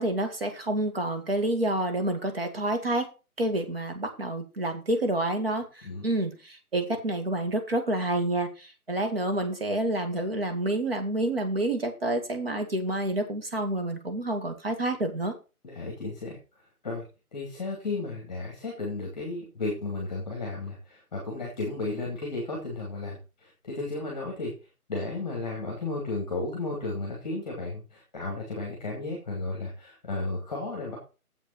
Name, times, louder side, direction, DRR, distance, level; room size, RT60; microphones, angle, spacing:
voice 1, 0.0-3.1 3.4-15.3, right 1 dB, 40° right, 5 dB, 2.0 m, -28 dB
voice 2, 15.6-16.4 16.8-17.1 17.3-24.5 24.9-31.0, left 3 dB, 5° left, -3 dB, 1.6 m, -34 dB
7.8 x 6.6 x 6.3 m, 0.31 s
hypercardioid pair, 175°, 45 cm